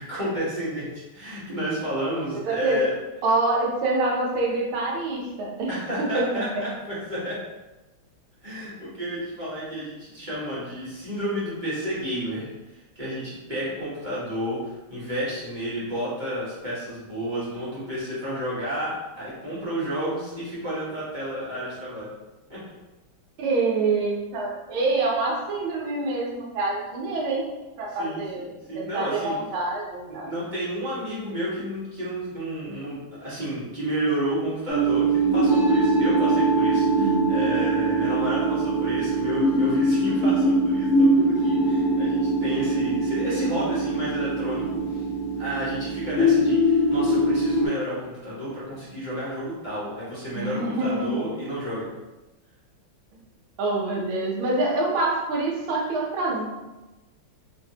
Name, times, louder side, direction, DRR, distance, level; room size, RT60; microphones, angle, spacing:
voice 1, 0.0-2.9 5.7-7.4 8.4-22.1 22.5-22.6 28.0-29.4 30.1-45.1 45.4-51.9, equal, 30° right, -9 dB, 1.0 m, -31 dB
voice 2, 2.3-2.9 3.2-5.7 6.0-6.4 23.4-27.5 27.8-28.5 28.7-30.3 36.7-37.3 50.3-51.3 53.6-56.4, right 2 dB, 80° right, -2 dB, 1.6 m, -26 dB
sound 1, 34.7-47.7, right 2 dB, 70° left, 0.6 m, -22 dB
3.3 x 3.1 x 2.7 m, 1.1 s
omnidirectional pair, 2.3 m